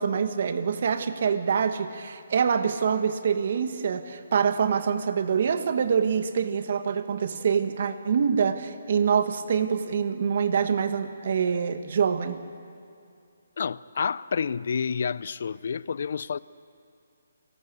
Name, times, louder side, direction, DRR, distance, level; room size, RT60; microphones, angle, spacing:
voice 1, 0.0-12.4, right 6 dB, 45° right, 1.6 m, -25 dB
voice 2, 13.6-16.4, left 6 dB, 50° left, 0.6 m, -29 dB
28.5 x 19.5 x 8.2 m
hypercardioid pair, 170°, 0 cm